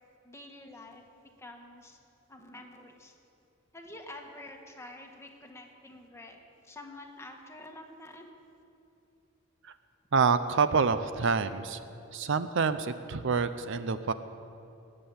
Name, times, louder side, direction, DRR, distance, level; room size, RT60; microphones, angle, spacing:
voice 1, 0.2-1.0 1.4-2.0 2.3-3.1 3.7-6.4 6.6-8.3, left 1 dB, 15° left, 2 dB, 1.5 m, -48 dB
voice 2, 10.1-11.8 12.1-14.1, right 5 dB, 60° right, 12 dB, 0.6 m, -27 dB
20.0 x 7.6 x 8.6 m, 2.8 s
head